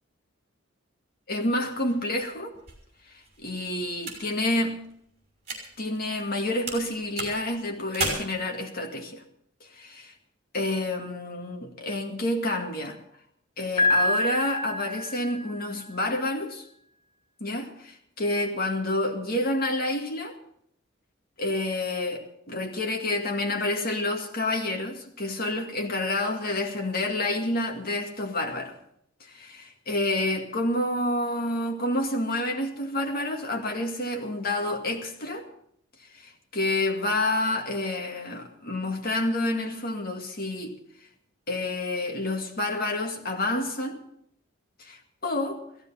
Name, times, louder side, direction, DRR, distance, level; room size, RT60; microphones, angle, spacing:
voice 1, 1.3-2.6 3.1-4.8 5.8-9.2 9.7-10.1 10.5-13.0 13.6-16.6 17.4-20.4 21.4-28.8 29.2-35.5 36.0-40.8 41.5-44.0 44.8-45.6, left 1 dB, 45° left, 2.1 m, -29 dB
sound 1, 1.3-6.4 6.7-8.1, right 3 dB, 35° right, 5.7 m, -37 dB
Piano, 13.8-15.7, left 1 dB, 25° left, 2.6 m, -26 dB
16.0 x 15.0 x 5.7 m
head